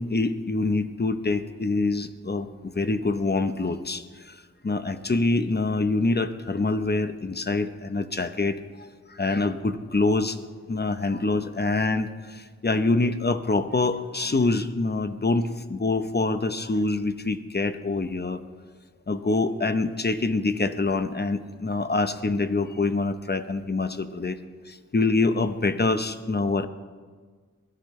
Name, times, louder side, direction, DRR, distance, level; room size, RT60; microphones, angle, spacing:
voice 1, 0.0-4.4 4.6-10.4 10.7-18.4 19.1-24.4 24.9-26.7, left 3 dB, 30° left, 10 dB, 0.9 m, -25 dB
23.5 x 16.5 x 3.3 m, 1.5 s
wide cardioid pair, 75°, 32 cm